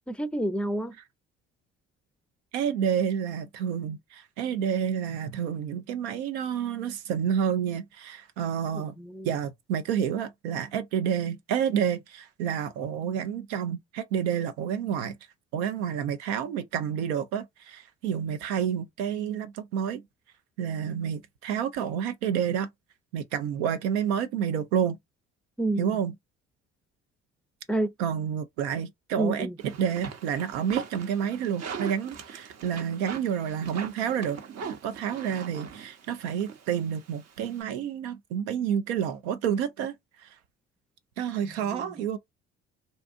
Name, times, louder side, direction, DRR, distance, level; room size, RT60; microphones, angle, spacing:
voice 1, 0.1-1.0 8.8-9.3 25.6-26.0 27.7-27.9 29.2-29.6 41.4-41.9, right 1 dB, 5° left, 0.4 m, -29 dB
voice 2, 2.5-8.9 9.2-15.1 15.5-20.0 20.6-22.7 23.1-25.0 25.8-26.1 28.0-29.5 29.8-34.4 34.8-40.4 41.2-42.2, right 8 dB, 85° right, 0.5 m, -29 dB
sound 1, 29.6-37.6, right 7 dB, 50° right, 0.8 m, -40 dB
2.6 x 2.4 x 2.4 m
hypercardioid pair, 55°, 33 cm